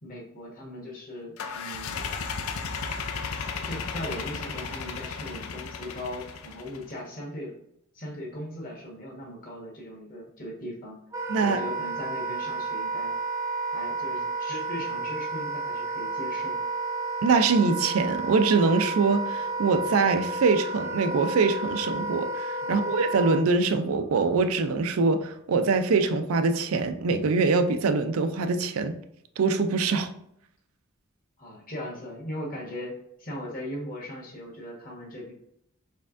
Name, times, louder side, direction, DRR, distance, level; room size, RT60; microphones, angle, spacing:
voice 1, 0.0-2.0 3.3-7.6 7.9-11.0 11.4-13.1 13.7-16.6 22.6-22.9 31.4-32.9 33.2-35.3, left 1 dB, 40° left, -3 dB, 1.4 m, -38 dB
sound 1, 1.4-6.9, left 5 dB, 85° left, 0.5 m, -34 dB
Wind instrument woodwind instrument, 11.1-23.4, right 3 dB, 15° right, 0.5 m, -31 dB
voice 2, 11.3-11.6 17.2-29.0 29.4-30.1, right 4 dB, 80° right, 8 dB, 0.4 m, -24 dB
4.4 x 3.4 x 2.5 m, 0.74 s
head